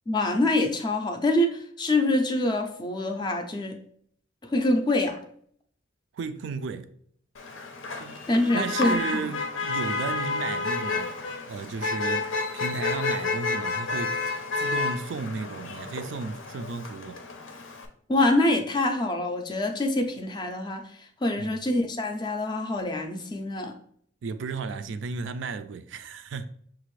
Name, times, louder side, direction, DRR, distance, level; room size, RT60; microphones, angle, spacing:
voice 1, 0.1-3.8 4.5-5.2 8.3-9.0 18.1-20.8 21.2-23.7, left 1 dB, 20° left, 0.4 m, -25 dB
voice 2, 6.1-6.9 8.0-8.2 8.5-11.2 11.5-14.2 14.6-17.2 21.4-21.6 24.2-26.5, right 4 dB, 65° right, 0.3 m, -34 dB
Motor vehicle (road), 7.3-17.8, left 4 dB, 75° left, 0.6 m, -30 dB
6.0 x 2.5 x 3.1 m
head